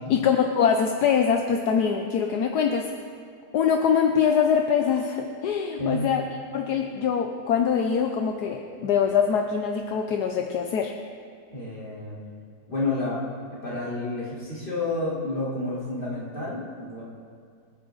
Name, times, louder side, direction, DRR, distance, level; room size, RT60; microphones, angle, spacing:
voice 1, 0.0-2.9 3.5-6.2 6.5-10.9, left 7 dB, 75° left, 4 dB, 1.3 m, -23 dB
voice 2, 11.5-12.2 12.7-13.2 13.6-17.0, left 2 dB, 30° left, -8 dB, 3.9 m, -30 dB
26.0 x 9.2 x 4.0 m, 2.3 s
omnidirectional pair, 1.8 m